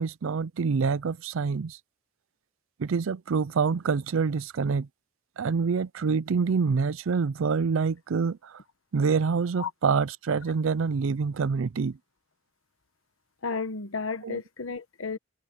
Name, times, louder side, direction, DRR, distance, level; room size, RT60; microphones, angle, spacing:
voice 1, 0.0-1.8 2.8-4.9 5.4-8.6 8.9-12.0 14.2-14.4, right 5 dB, 70° right, 0.5 m, -26 dB
voice 2, 13.4-15.2, left 4 dB, 75° left, 1.1 m, -32 dB
head